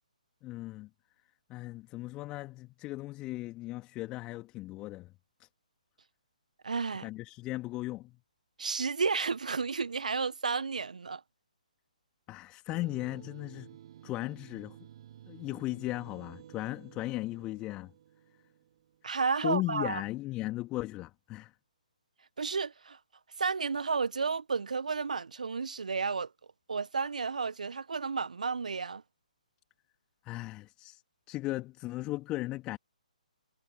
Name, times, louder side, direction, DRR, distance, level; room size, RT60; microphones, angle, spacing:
voice 1, 0.4-0.9 1.5-5.1 5.4-5.5 7.0-8.2 12.3-13.7 14.0-14.8 15.3-17.9 19.4-21.5 30.2-31.0 31.3-32.8, left 18 dB, 20° left, 2.9 m, -37 dB
voice 2, 6.6-7.1 8.6-11.2 19.0-20.0 22.4-23.0 23.4-26.3 26.7-29.0, right 5 dB, 65° right, 1.2 m, -32 dB
sound 1, 12.7-19.3, right 11 dB, 45° right, 4.9 m, -53 dB
figure-of-eight pair, 135°, 4 cm